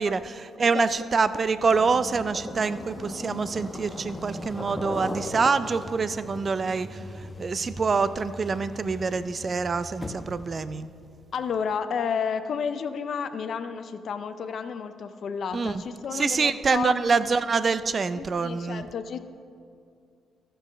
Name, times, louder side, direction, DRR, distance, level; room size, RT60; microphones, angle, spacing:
voice 1, 0.0-6.9 7.4-10.9 15.5-15.7 16.1-18.8, right 4 dB, 40° right, 14 dB, 0.4 m, -25 dB
sound 1, 1.4-10.5, left 1 dB, 15° left, 1.0 m, -38 dB
voice 2, 11.3-17.2 18.1-19.2, left 6 dB, 60° left, 9 dB, 0.5 m, -31 dB
14.0 x 5.6 x 6.1 m, 2.4 s
cardioid pair, 90°, 0 cm